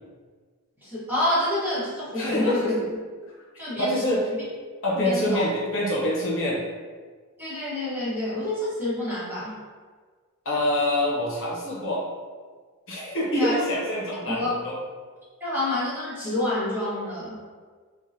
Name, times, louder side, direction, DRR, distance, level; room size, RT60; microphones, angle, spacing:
voice 1, 0.8-2.8 3.6-4.4 4.9-5.5 7.4-9.6 13.3-13.5 14.3-14.6 15.4-17.4, left 1 dB, 10° right, -10 dB, 1.2 m, -28 dB
voice 2, 2.1-2.7 3.8-4.3 4.8-6.6 10.4-12.0 12.9-14.8, left 1 dB, 60° left, -6 dB, 0.9 m, -25 dB
3.6 x 2.2 x 2.7 m, 1.5 s
head